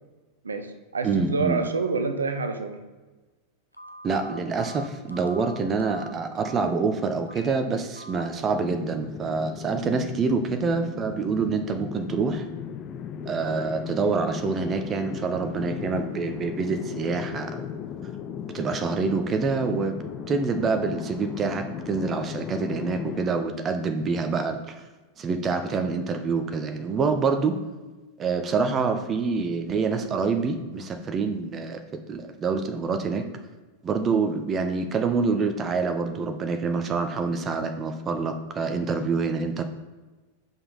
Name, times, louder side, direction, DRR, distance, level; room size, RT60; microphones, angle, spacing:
voice 1, 0.4-2.8, right 4 dB, 75° right, 8 dB, 0.7 m, -27 dB
voice 2, 1.0-1.6 4.0-12.5 13.2-17.7 18.5-20.0 20.3-24.8 25.2-27.6 28.2-33.2 33.8-39.6, right 4 dB, 25° right, 7 dB, 0.6 m, -26 dB
Telephone, 3.7-6.7 7.2-7.5 7.9-8.3, equal, 85° left, 0.5 m, -44 dB
sound 1, 8.5-23.2, left 7 dB, 30° left, 0.5 m, -36 dB
7.0 x 5.6 x 4.1 m, 1.2 s
figure-of-eight pair, 90°, 0 cm